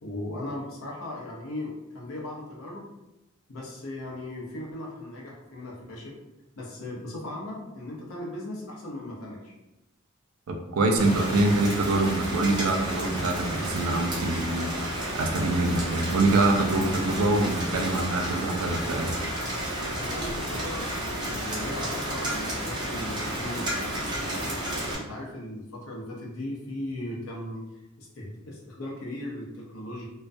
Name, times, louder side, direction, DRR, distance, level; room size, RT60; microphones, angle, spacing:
voice 1, 0.0-2.9 3.5-6.2 6.6-9.5 20.0-27.6 28.0-30.1, left 1 dB, 90° left, -3 dB, 0.7 m, -38 dB
voice 2, 10.5-19.2, right 2 dB, 85° right, 3 dB, 0.4 m, -25 dB
Rain, 11.0-24.9, right 1 dB, 20° right, 0.6 m, -32 dB
2.3 x 2.1 x 2.5 m, 0.95 s
head